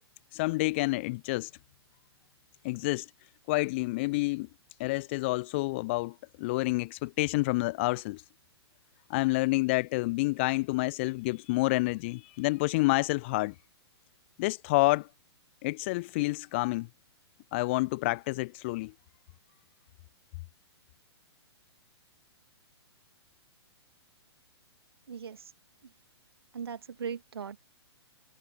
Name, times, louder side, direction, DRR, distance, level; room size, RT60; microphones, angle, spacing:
voice 1, 0.3-1.5 2.6-3.1 3.5-4.5 4.8-8.2 9.1-13.5 14.4-15.1 15.6-16.9 17.5-18.9, left 22 dB, 25° left, 0.3 m, -28 dB
voice 2, 25.1-25.5 26.5-27.6, right 7 dB, 60° right, 2.3 m, -38 dB
figure-of-eight pair, 115°, 14 cm